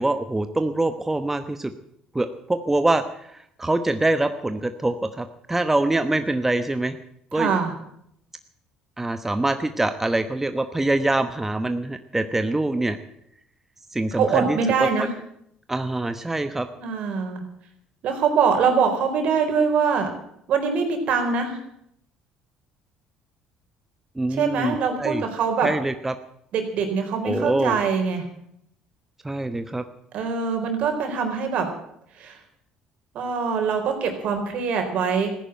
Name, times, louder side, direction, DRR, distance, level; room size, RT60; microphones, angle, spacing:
voice 1, 0.0-1.7 2.1-7.0 7.3-7.6 9.0-13.0 13.9-15.1 15.7-16.7 24.2-25.2 25.6-26.1 27.2-27.8 29.2-29.8, right 2 dB, 15° right, 9 dB, 1.0 m, -24 dB
voice 2, 7.3-7.7 14.1-15.1 16.8-17.4 18.0-20.1 20.5-21.6 24.3-25.7 26.5-28.2 30.1-31.7 32.2-32.4 33.1-35.3, right 5 dB, 65° right, 5 dB, 4.1 m, -23 dB
14.5 x 10.5 x 9.0 m, 0.73 s
supercardioid pair, 75°, 2 cm